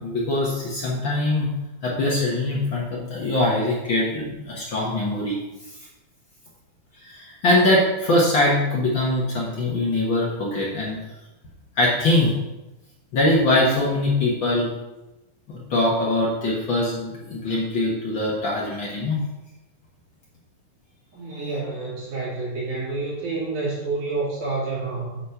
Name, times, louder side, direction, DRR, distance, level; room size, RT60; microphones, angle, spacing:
voice 1, 0.0-1.5 1.8-5.4 7.0-11.0 11.8-12.3 13.1-14.7 15.5-19.2, left 1 dB, 50° left, -4 dB, 1.6 m, -22 dB
voice 2, 21.1-25.2, right 3 dB, 85° right, -7 dB, 4.4 m, -28 dB
8.4 x 4.2 x 5.6 m, 1.0 s
omnidirectional pair, 3.5 m